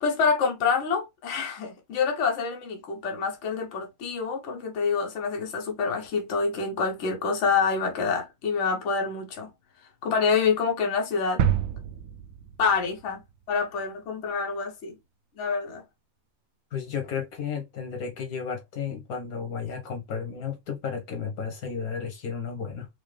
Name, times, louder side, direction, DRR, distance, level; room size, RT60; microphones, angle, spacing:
voice 1, 0.0-9.5 10.0-11.4 12.6-13.2 13.5-15.0 15.4-15.8, left 5 dB, 55° left, 1.2 m, -27 dB
sound 1, 11.4-13.3 13.7-13.8, right 9 dB, 65° right, 0.7 m, -28 dB
voice 2, 16.7-22.9, left 6 dB, 80° left, 1.5 m, -33 dB
4.9 x 2.0 x 3.2 m
omnidirectional pair, 1.5 m